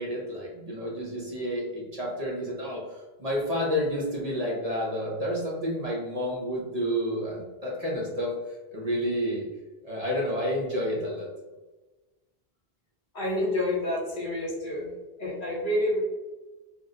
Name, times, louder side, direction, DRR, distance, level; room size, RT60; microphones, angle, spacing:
voice 1, 0.0-9.5 9.8-11.3, equal, 45° right, -4 dB, 0.7 m, -30 dB
voice 2, 13.1-14.9 15.2-16.0, left 1 dB, 55° left, -3 dB, 0.9 m, -28 dB
2.7 x 2.0 x 3.6 m, 1.2 s
omnidirectional pair, 1.0 m